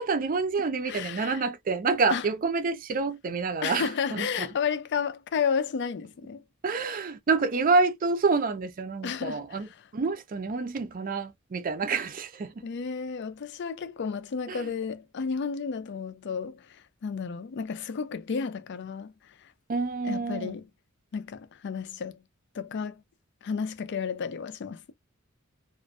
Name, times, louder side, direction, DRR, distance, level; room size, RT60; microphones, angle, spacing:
voice 1, 0.0-4.5 6.6-9.7 9.9-12.6 14.5-14.6 19.7-20.6, right 4 dB, 40° right, 0.4 m, -28 dB
voice 2, 0.9-1.4 2.1-2.3 3.6-6.4 9.0-9.7 12.6-19.5 20.0-20.7 21.1-22.2 22.5-23.0 23.4-24.9, left 6 dB, 55° left, 0.4 m, -32 dB
2.4 x 2.2 x 2.3 m
head